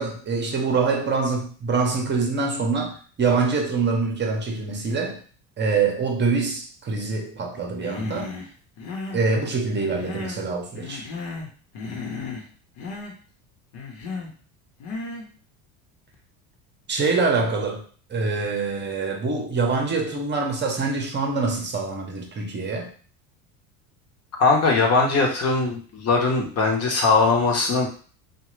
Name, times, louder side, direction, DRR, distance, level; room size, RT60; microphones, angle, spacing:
voice 1, 0.0-5.2 5.6-8.4 9.1-11.0 16.9-17.8 18.1-22.9, right 4 dB, 25° right, 0.8 m, -25 dB
Human voice, 7.8-8.5 8.8-9.3 9.7-10.5 10.8-11.5 11.8-12.5 12.8-13.1 13.7-14.3 14.8-15.3, left 3 dB, 75° left, 1.1 m, -34 dB
voice 2, 24.4-27.9, left 4 dB, 35° left, 1.0 m, -20 dB
2.8 x 2.4 x 3.1 m
supercardioid pair, 95°, 42 cm